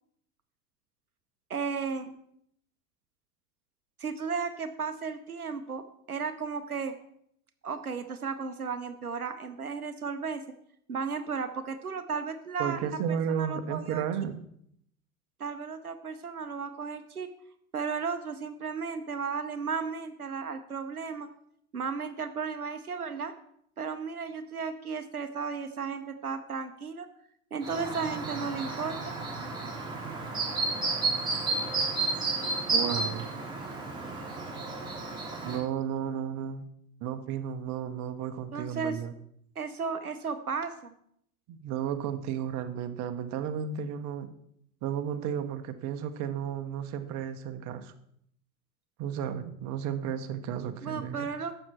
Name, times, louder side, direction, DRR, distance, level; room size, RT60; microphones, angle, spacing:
voice 1, 1.5-2.1 4.0-6.9 7.6-10.4 10.9-14.0 15.4-17.3 17.7-21.3 21.7-23.3 23.8-27.1 27.5-29.1 38.5-39.0 39.6-40.9 50.8-51.6, right 5 dB, 90° right, 9 dB, 0.8 m, -34 dB
voice 2, 12.6-14.4 32.7-33.3 35.4-36.6 37.0-39.1 41.5-44.3 44.8-47.9 49.0-51.3, right 8 dB, 40° right, 8 dB, 1.1 m, -33 dB
Chirp tweet, 27.6-35.6, right 3 dB, 10° right, 3.6 m, -32 dB
12.0 x 7.9 x 4.4 m, 0.69 s
figure-of-eight pair, 80°, 43 cm